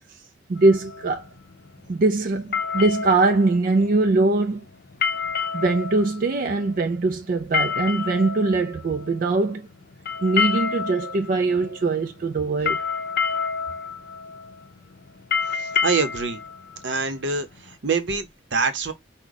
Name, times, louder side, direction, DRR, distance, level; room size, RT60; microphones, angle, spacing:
voice 1, 0.5-1.2 1.9-4.6 5.5-9.7 10.2-12.8, right 3 dB, 50° right, 0.4 m, -22 dB
sound 1, 0.6-17.7, left 6 dB, 55° left, 0.5 m, -29 dB
voice 2, 15.6-16.4 16.8-18.9, right 4 dB, 75° right, 0.8 m, -25 dB
4.7 x 2.2 x 4.0 m
head